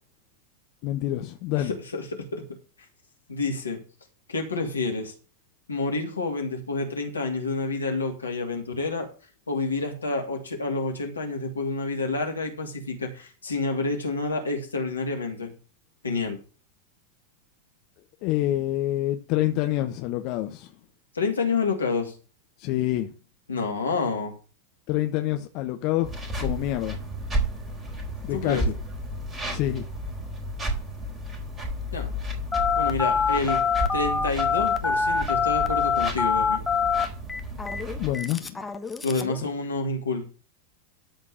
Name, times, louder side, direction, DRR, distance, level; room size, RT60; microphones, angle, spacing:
voice 1, 0.8-1.7 18.2-20.7 22.6-23.1 24.9-26.1 26.4-27.0 28.2-28.6 29.5-29.8 37.9-38.6, left 14 dB, 45° left, 1.0 m, -27 dB
voice 2, 1.5-2.1 2.3-2.4 3.3-3.8 4.3-5.1 5.7-9.1 9.5-15.5 16.0-16.4 21.1-22.1 23.5-24.3 28.3-28.7 31.9-32.1 32.8-33.6 33.9-36.6 39.0-40.2, left 3 dB, 75° left, 3.0 m, -28 dB
sound 1, 26.0-38.1, equal, 15° right, 3.7 m, -32 dB
Telephone, 32.5-39.4, left 6 dB, 10° left, 1.3 m, -25 dB
13.0 x 4.5 x 7.1 m
figure-of-eight pair, 90°, 0 cm